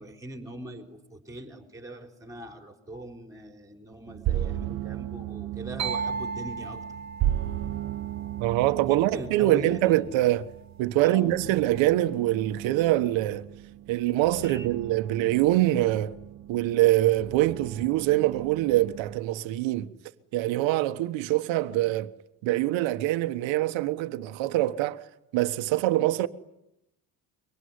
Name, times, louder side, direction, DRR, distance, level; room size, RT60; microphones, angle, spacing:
voice 1, 0.0-6.8 8.9-10.0 11.0-11.3 14.4-14.7, right 1 dB, 5° right, 4.1 m, -40 dB
sound 1, 4.1-19.2, right 12 dB, 50° right, 1.0 m, -36 dB
sound 2, 5.8-9.5, right 5 dB, 35° right, 1.8 m, -36 dB
voice 2, 8.4-10.5 10.8-13.4 13.9-16.1 16.5-19.9 20.3-22.1 22.4-25.0 25.3-26.3, right 15 dB, 90° right, 1.4 m, -24 dB
25.0 x 24.0 x 9.7 m
cardioid pair, 160°, 44 cm